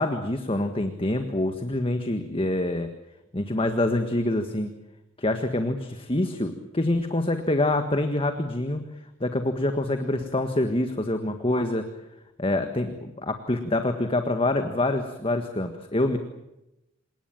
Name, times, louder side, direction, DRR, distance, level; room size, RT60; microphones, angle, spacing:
voice 1, 0.0-2.9 3.3-4.7 5.2-8.9 9.2-11.9 12.4-16.2, left 1 dB, 30° left, 7 dB, 1.6 m, -26 dB
28.0 x 18.5 x 9.0 m, 0.91 s
head